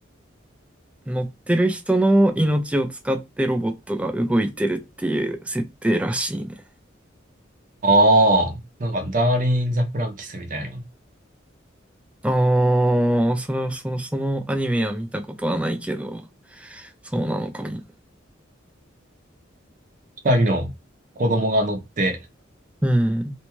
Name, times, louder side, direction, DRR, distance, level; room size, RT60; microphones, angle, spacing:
voice 1, 1.1-6.6 12.2-16.3 16.5-17.8 22.8-23.3, right 1 dB, 5° right, 0.3 m, -23 dB
voice 2, 7.8-10.8 20.2-20.7 21.2-22.2, right 1 dB, 40° right, 0.6 m, -20 dB
2.6 x 2.2 x 3.0 m
head